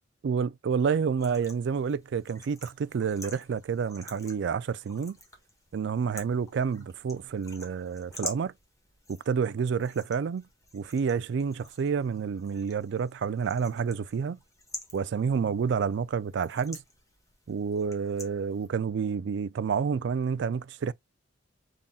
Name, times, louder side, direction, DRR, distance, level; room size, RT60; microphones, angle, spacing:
voice 1, 0.2-5.2 5.7-8.5 9.1-10.4 10.7-14.4 14.9-16.8 17.5-20.9, right 6 dB, 65° right, 0.3 m, -29 dB
sound 1, 1.2-18.7, left 2 dB, 15° left, 1.2 m, -48 dB
5.5 x 3.7 x 2.3 m
head